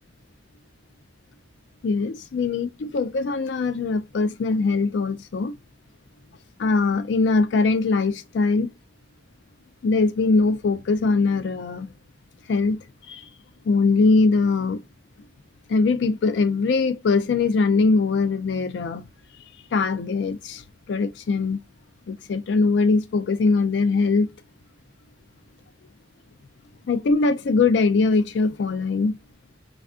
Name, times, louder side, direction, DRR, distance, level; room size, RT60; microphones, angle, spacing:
voice 1, 1.8-5.5 6.6-8.7 9.8-11.9 12.5-12.8 13.1-13.3 13.6-14.8 15.7-19.1 19.7-21.6 22.1-24.3 26.9-29.2, left 4 dB, 70° left, 0.4 m, -21 dB
3.3 x 2.3 x 2.3 m
head